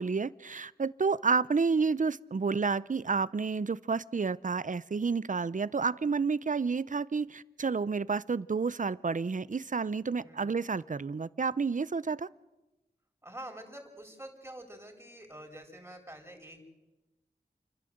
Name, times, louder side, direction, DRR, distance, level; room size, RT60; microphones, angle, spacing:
voice 1, 0.0-12.3, right 5 dB, 50° right, 20 dB, 0.6 m, -30 dB
voice 2, 13.2-16.6, right 1 dB, 15° right, 3 dB, 4.5 m, -47 dB
29.0 x 11.5 x 7.8 m, 1.1 s
wide cardioid pair, 60°, 17 cm